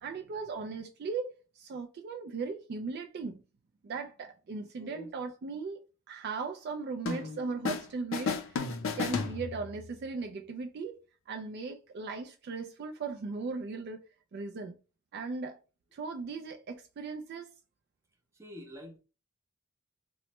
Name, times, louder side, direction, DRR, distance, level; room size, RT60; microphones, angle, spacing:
voice 1, 0.0-3.4 3.8-8.6 8.9-11.0 11.3-14.0 14.3-14.8 15.1-15.6 15.9-17.5, right 4 dB, 50° right, 0.3 m, -38 dB
voice 2, 4.8-5.1 18.3-19.0, left 1 dB, 15° right, 0.6 m, -47 dB
sound 1, 7.1-7.9 8.1-9.9, left 4 dB, 65° left, 0.4 m, -33 dB
3.0 x 2.1 x 3.0 m
head